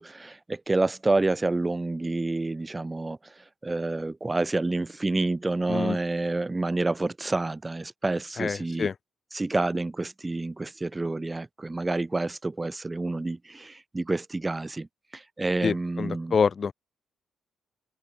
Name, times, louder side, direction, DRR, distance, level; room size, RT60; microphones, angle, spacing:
voice 1, 0.0-3.2 3.6-8.9 9.3-14.9 15.1-16.3, right 2 dB, 20° right, 0.7 m, -28 dB
voice 2, 8.4-8.9 15.6-16.7, left 6 dB, 40° left, 1.1 m, -26 dB
open air
cardioid pair, 90°, 0 cm